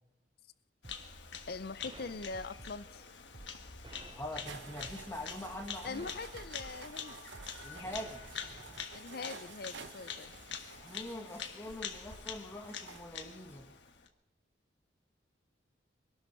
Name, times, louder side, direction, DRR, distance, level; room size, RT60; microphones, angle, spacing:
Bird vocalization bird call bird song, 0.8-14.1, left 7 dB, 70° left, 1.4 m, -46 dB
sound 1, 0.8-8.8, right 2 dB, 25° right, 0.5 m, -54 dB
voice 1, 1.5-3.0 5.8-7.2 8.9-10.3, left 4 dB, 55° left, 15 dB, 0.5 m, -42 dB
voice 2, 4.1-6.1 7.6-8.2 10.8-13.6, left 1 dB, 15° left, 2 dB, 1.9 m, -43 dB
sound 2, 4.5-13.0, right 4 dB, 70° right, 0.9 m, -52 dB
23.5 x 12.0 x 4.6 m, 0.96 s
head